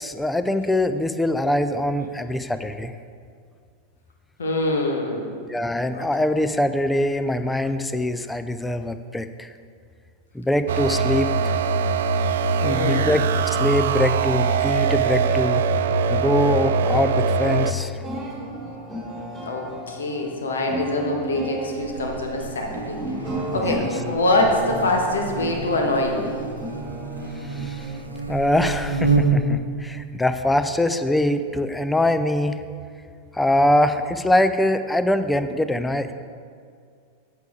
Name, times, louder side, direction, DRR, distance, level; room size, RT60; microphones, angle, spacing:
voice 1, 0.0-2.9 5.5-9.5 10.3-11.6 12.6-15.6 16.1-17.9 23.7-23.8 27.4-27.9 28.3-32.6 33.3-36.1, left 1 dB, 5° left, 10 dB, 0.5 m, -23 dB
voice 2, 4.4-5.2 5.9-6.0 12.6-13.1 19.4-23.0 23.2-26.3, left 1 dB, 70° left, 1 dB, 1.4 m, -24 dB
sound 1, 10.7-17.7, right 5 dB, 60° right, 0.4 m, -22 dB
sound 2, 16.1-29.1, right 1 dB, 20° right, 2.0 m, -35 dB
Buzz, 21.8-29.6, right 4 dB, 85° right, 0.8 m, -29 dB
8.3 x 8.1 x 4.8 m, 2.2 s
figure-of-eight pair, 90°, 0 cm